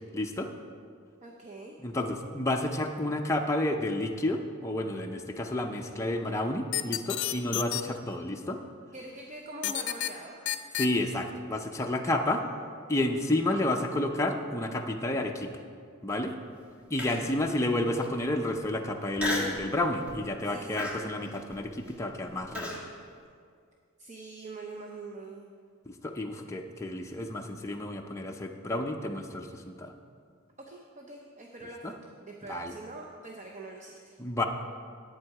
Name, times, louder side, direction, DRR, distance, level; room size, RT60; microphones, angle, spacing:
voice 1, 0.1-0.5 1.8-8.6 10.8-12.4 12.9-15.5 16.0-16.3 16.9-22.7 25.9-29.9 31.8-31.9 32.5-32.7 34.2-34.4, left 1 dB, 15° left, 2 dB, 0.6 m, -30 dB
voice 2, 1.2-1.8 8.9-10.4 12.3-13.2 17.0-17.3 20.4-21.1 24.0-25.5 30.6-34.2, right 2 dB, 35° right, 1 dB, 0.7 m, -45 dB
sound 1, 6.7-7.8 9.6-10.1 10.5-10.9, left 12 dB, 55° left, 0.6 m, -29 dB
Human voice, 17.0-17.4 18.0-18.1 19.2-19.6 20.1-20.3 20.8-22.8, left 1 dB, 5° right, 1.3 m, -34 dB
10.5 x 8.4 x 4.7 m, 2.2 s
head